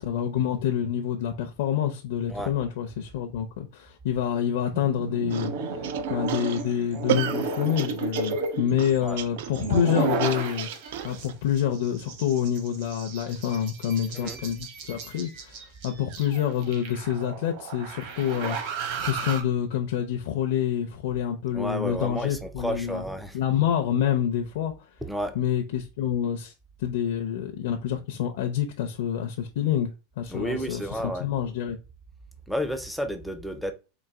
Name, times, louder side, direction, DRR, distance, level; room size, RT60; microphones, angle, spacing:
voice 1, 0.0-10.7 11.0-23.0 23.3-24.7 25.3-26.5 26.8-31.8, left 9 dB, 60° left, 0.5 m, -27 dB
sound 1, 4.7-11.3 11.6-19.4, right 4 dB, 50° right, 1.0 m, -33 dB
sound 2, 5.3-11.3, right 10 dB, 70° right, 0.4 m, -33 dB
voice 2, 21.5-23.4 25.0-25.4 30.3-31.3 32.5-33.7, equal, ahead, 0.4 m, -31 dB
3.9 x 2.6 x 3.4 m
supercardioid pair, 170°, 0 cm